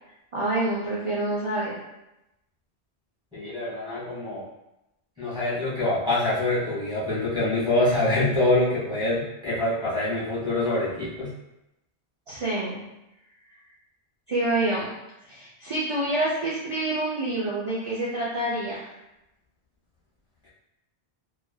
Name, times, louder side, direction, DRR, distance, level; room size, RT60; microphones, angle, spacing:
voice 1, 0.3-1.7 12.3-12.8 14.3-14.9 15.3-18.9, right 2 dB, 40° right, -7 dB, 0.5 m, -27 dB
voice 2, 3.3-4.4 5.2-11.3, left 2 dB, 5° right, -11 dB, 1.4 m, -25 dB
3.1 x 2.4 x 2.3 m, 0.91 s
omnidirectional pair, 1.1 m